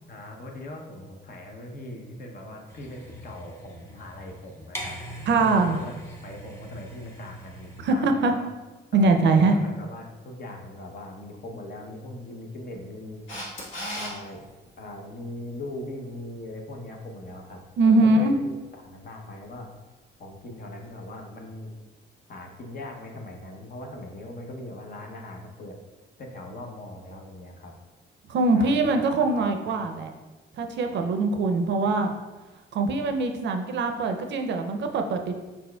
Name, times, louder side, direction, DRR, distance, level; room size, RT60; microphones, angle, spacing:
voice 1, 0.1-5.9 6.2-8.4 8.9-13.2 14.0-14.5 14.8-18.6 18.8-19.7 20.2-21.7 22.3-25.8 26.2-27.7 28.5-29.8, left 1 dB, 50° left, 2 dB, 0.7 m, -40 dB
sound 1, 2.7-7.8, right 1 dB, 10° left, 0.9 m, -42 dB
voice 2, 5.3-5.8 7.8-8.3 8.9-9.6 17.8-18.4 28.3-30.1 30.6-32.1 32.7-35.4, right 3 dB, 65° right, 6 dB, 0.5 m, -22 dB
Camera, 13.3-14.1 20.8-20.9, equal, 75° left, 1.4 m, -34 dB
4.7 x 4.3 x 2.2 m, 1.2 s
cardioid pair, 90°, 20 cm